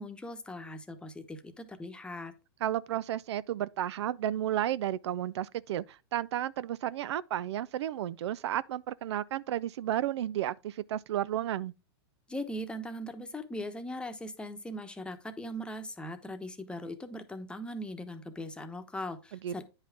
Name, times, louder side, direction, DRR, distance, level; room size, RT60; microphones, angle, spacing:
voice 1, 0.0-2.3 12.3-19.6, left 1 dB, 5° left, 1.0 m, -40 dB
voice 2, 2.6-11.7 19.4-19.6, right 12 dB, 70° right, 0.4 m, -32 dB
9.7 x 5.6 x 3.5 m
hypercardioid pair, 130°, 15 cm